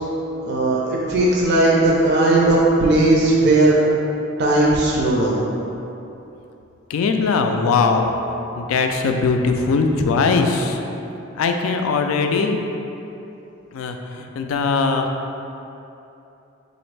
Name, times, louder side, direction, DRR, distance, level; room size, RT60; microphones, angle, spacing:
voice 1, 0.4-3.8 4.4-5.4, right 2 dB, 55° right, -4 dB, 0.4 m, -17 dB
voice 2, 6.9-8.1 8.6-10.8 11.3-12.6 13.7-15.1, left 4 dB, 85° left, 5 dB, 0.3 m, -20 dB
3.9 x 2.5 x 3.2 m, 2.9 s
head